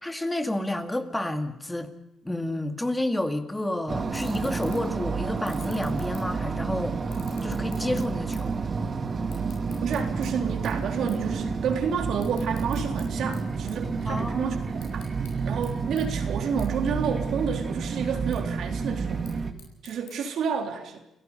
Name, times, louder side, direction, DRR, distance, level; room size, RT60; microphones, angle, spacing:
voice 1, 0.0-1.9 2.2-7.0 7.4-8.6 14.1-14.6, left 1 dB, 10° left, 7 dB, 2.2 m, -30 dB
sound 1, 3.5-3.7 4.1-5.0 5.4-6.6 7.0-8.6 8.8-10.3 10.7-10.8 11.1-11.3 11.6-13.0 13.3-14.3 14.7-15.3 15.6-15.7 16.0-16.1 16.6-16.7 17.1-17.6 18.1-18.4 19.0-20.1, left 8 dB, 85° left, 7.5 m, -49 dB
sound 2, 3.9-19.5, right 5 dB, 40° right, 2.4 m, -30 dB
voice 2, 9.8-15.1 15.5-19.2 19.8-21.0, right 6 dB, 70° right, 4 dB, 3.6 m, -30 dB
29.5 x 16.5 x 5.6 m, 0.87 s
cardioid pair, 90°, 0 cm